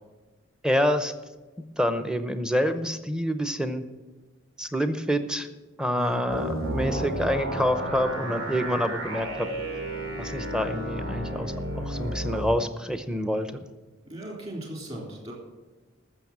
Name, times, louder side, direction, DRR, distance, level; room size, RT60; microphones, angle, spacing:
voice 1, 0.6-1.1 1.8-3.8 4.6-5.5 5.8-9.5 10.2-13.6, equal, 5° right, 9 dB, 0.7 m, -27 dB
sound 1, 6.3-12.5, right 1 dB, 85° right, 3.2 m, -32 dB
voice 2, 14.1-15.3, equal, 30° right, -2 dB, 3.7 m, -37 dB
14.0 x 6.5 x 7.4 m, 1.2 s
head